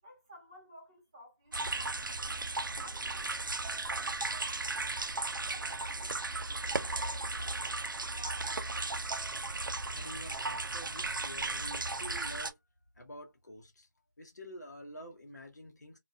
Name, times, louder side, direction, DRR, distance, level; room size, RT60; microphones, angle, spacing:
voice 1, 0.0-2.4 2.8-5.0 5.4-8.6, equal, 20° right, 0.9 m, -55 dB
sound 1, 1.5-12.5, right 3 dB, 80° right, 0.4 m, -35 dB
voice 2, 9.9-12.6 12.9-13.9 14.2-16.0, left 1 dB, 60° left, 0.7 m, -48 dB
2.3 x 2.2 x 2.4 m
figure-of-eight pair, 170°, 11 cm